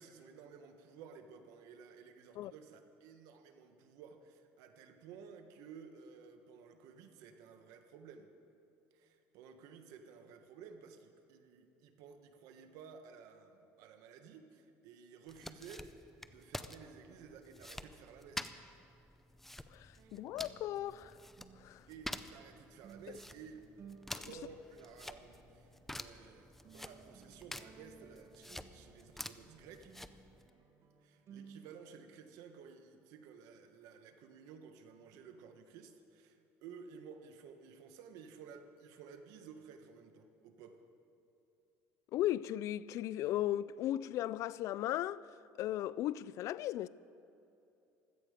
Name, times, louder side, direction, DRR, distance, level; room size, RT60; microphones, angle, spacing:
voice 1, 0.0-8.3 8.9-18.5 20.0-20.2 21.9-23.6 24.1-29.9 31.0-40.8, right 6 dB, 75° right, 1.4 m, -54 dB
sound 1, 15.3-30.5, left 1 dB, 5° left, 0.5 m, -49 dB
voice 2, 19.7-21.2 21.6-21.8 24.1-24.3 42.1-45.3 45.6-46.9, left 13 dB, 60° left, 0.3 m, -36 dB
sound 2, 20.0-31.6, right 6 dB, 50° right, 1.7 m, -59 dB
16.0 x 13.0 x 5.1 m
cardioid pair, 115°, 6 cm